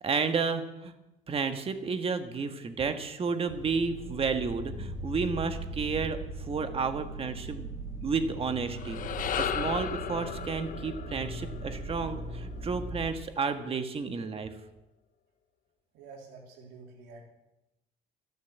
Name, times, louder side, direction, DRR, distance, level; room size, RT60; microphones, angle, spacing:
voice 1, 0.0-0.9 1.3-14.5, right 5 dB, 35° right, 8 dB, 1.6 m, -32 dB
sound 1, 3.5-13.1, right 1 dB, 20° right, 6.0 m, -39 dB
sound 2, 8.6-13.1, left 9 dB, 55° left, 1.1 m, -36 dB
voice 2, 15.9-17.3, right 4 dB, 90° right, 0 dB, 3.7 m, -48 dB
12.5 x 11.0 x 8.1 m, 0.93 s
cardioid pair, 110°, 17 cm